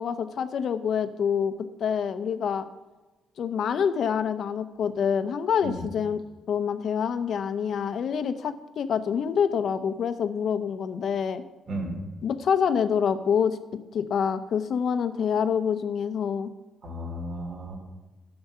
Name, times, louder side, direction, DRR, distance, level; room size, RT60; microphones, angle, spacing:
voice 1, 0.0-1.5 1.8-2.6 3.4-6.2 6.5-11.4 12.2-13.6 13.9-16.5, left 7 dB, 60° left, 11 dB, 0.8 m, -26 dB
voice 2, 16.8-17.8, equal, 55° right, 0 dB, 3.2 m, -34 dB
12.0 x 7.0 x 5.6 m, 1.2 s
cardioid pair, 90°, 0 cm